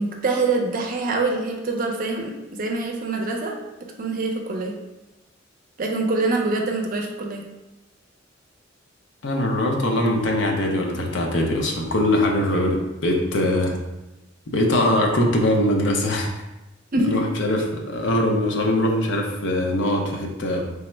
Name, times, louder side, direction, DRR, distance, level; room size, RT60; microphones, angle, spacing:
voice 1, 0.0-3.6 4.0-4.8 5.8-7.4 16.9-17.2, right 3 dB, 45° right, 2 dB, 0.5 m, -24 dB
voice 2, 9.2-13.8 14.5-16.4 17.1-20.6, left 1 dB, 65° left, 1 dB, 0.6 m, -22 dB
3.4 x 2.1 x 4.3 m, 1.0 s
head